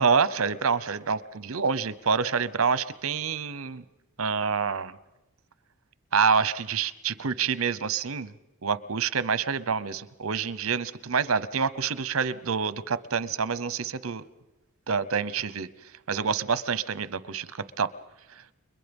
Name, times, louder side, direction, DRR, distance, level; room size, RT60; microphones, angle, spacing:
voice 1, 0.0-3.8 4.2-4.9 6.1-8.3 8.6-14.2 14.9-15.7 16.1-17.9, right 5 dB, 65° right, 17 dB, 0.8 m, -27 dB
29.5 x 23.0 x 5.4 m, 0.98 s
head